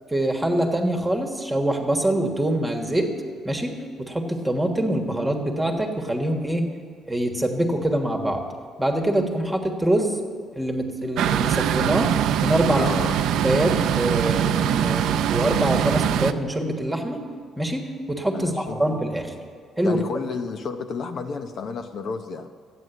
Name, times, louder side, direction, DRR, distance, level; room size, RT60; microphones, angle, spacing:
voice 1, 0.1-3.1 3.4-3.7 4.0-6.7 7.1-8.4 8.8-10.2 10.5-12.1 12.4-12.9 13.4-17.2 17.6-19.3 19.8-20.0, right 1 dB, 10° right, 3 dB, 1.4 m, -24 dB
sound 1, 11.2-16.3, right 9 dB, 75° right, 0.5 m, -22 dB
voice 2, 12.8-13.2 18.3-18.8 19.8-22.5, left 5 dB, 50° left, 6 dB, 0.7 m, -31 dB
13.5 x 9.4 x 8.0 m, 2.1 s
cardioid pair, 155°, 0 cm